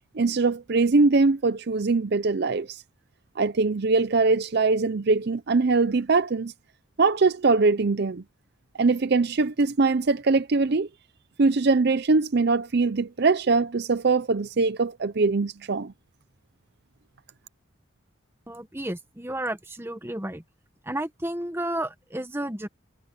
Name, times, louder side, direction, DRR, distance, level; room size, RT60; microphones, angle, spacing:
voice 1, 0.1-2.8 3.4-6.5 7.0-8.2 8.8-10.9 11.4-15.9, right 3 dB, 50° right, 0.5 m, -22 dB
voice 2, 18.5-20.4 20.8-22.7, right 1 dB, 10° right, 1.3 m, -32 dB
head